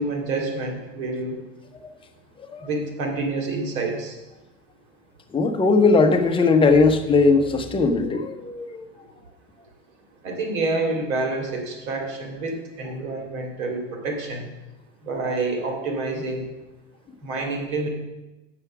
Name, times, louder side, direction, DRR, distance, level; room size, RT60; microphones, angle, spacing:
voice 1, 0.0-1.4 2.6-4.2 10.2-14.5 15.0-16.5 17.2-17.9, right 3 dB, 80° right, 2 dB, 2.4 m, -28 dB
voice 2, 2.4-2.7 5.3-8.9, left 4 dB, 15° left, 4 dB, 0.8 m, -19 dB
7.3 x 6.9 x 5.9 m, 1.1 s
supercardioid pair, 120°, 41 cm